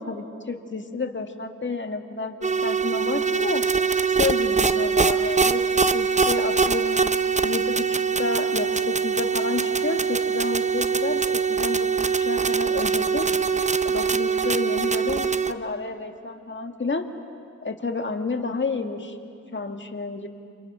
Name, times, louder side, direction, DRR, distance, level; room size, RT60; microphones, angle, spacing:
voice 1, 0.0-3.7 4.1-7.0 7.4-11.9 12.2-13.3 13.8-17.1 17.6-19.2 19.5-20.3, left 3 dB, 40° left, 6 dB, 1.8 m, -30 dB
sound 1, 2.4-15.5, right 5 dB, 25° right, 0.7 m, -23 dB
30.0 x 28.0 x 6.2 m, 2.3 s
wide cardioid pair, 95°, 31 cm